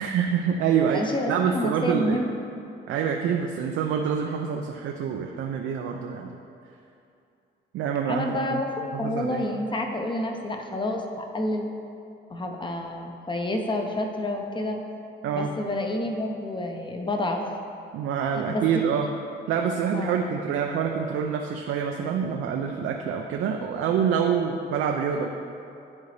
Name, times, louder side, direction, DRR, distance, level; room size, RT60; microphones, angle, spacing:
voice 1, 0.0-2.2 2.9-6.4 7.7-8.6 8.9-9.5 15.2-15.5 17.9-19.1 19.5-25.3, right 7 dB, 80° right, 2 dB, 0.5 m, -26 dB
voice 2, 0.9-2.3 8.1-8.7 9.0-11.7 12.3-14.8 15.3-17.4 18.5-18.6 19.9-20.1, left 1 dB, 25° left, 3 dB, 0.8 m, -29 dB
10.5 x 3.9 x 3.3 m, 2.6 s
cardioid pair, 90°, 20 cm